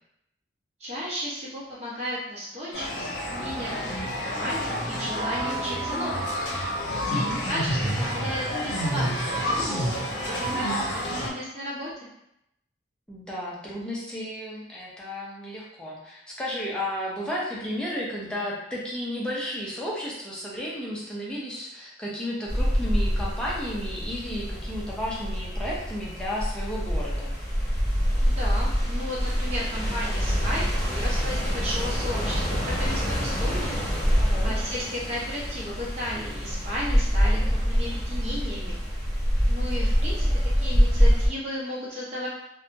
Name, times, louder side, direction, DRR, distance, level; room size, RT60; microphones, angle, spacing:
voice 1, 0.8-3.9 4.2-6.3 7.0-11.9 28.2-33.8 34.4-38.8 39.4-40.3 40.6-42.3, equal, 35° right, -7 dB, 0.8 m, -34 dB
sound 1, 2.7-11.3, equal, 70° left, 0.7 m, -29 dB
voice 2, 6.9-7.4 13.1-27.3 34.2-34.6, left 1 dB, 5° left, -6 dB, 0.5 m, -33 dB
sound 2, 22.5-41.3, equal, 20° left, 1.1 m, -25 dB
2.7 x 2.2 x 2.6 m, 0.80 s
head